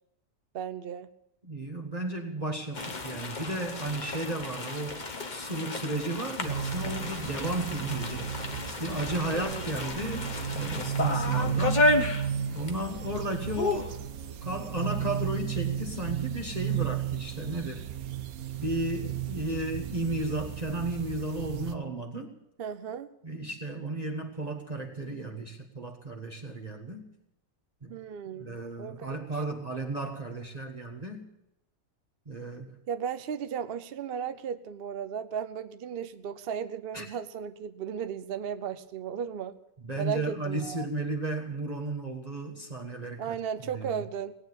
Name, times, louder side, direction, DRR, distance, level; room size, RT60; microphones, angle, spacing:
voice 1, 0.5-1.1 9.3-9.7 22.6-23.1 27.9-28.5 28.8-29.2 32.9-39.6 40.0-40.9 43.2-44.3, right 7 dB, 50° right, 11 dB, 0.7 m, -35 dB
voice 2, 1.4-5.0 5.3-8.3 8.8-11.9 12.5-14.0 14.4-17.8 18.6-22.4 23.2-27.1 27.8-27.9 28.4-31.3 32.3-32.8 36.9-37.1 39.8-43.3 43.7-44.0, right 2 dB, 25° right, 1 dB, 1.5 m, -34 dB
sound 1, 2.7-12.9 13.1-13.2 13.5-13.9, left 2 dB, 35° left, 1.2 m, -32 dB
sound 2, 6.4-21.7, right 8 dB, 75° right, 1.2 m, -34 dB
18.0 x 9.2 x 8.0 m, 0.85 s
omnidirectional pair, 1.6 m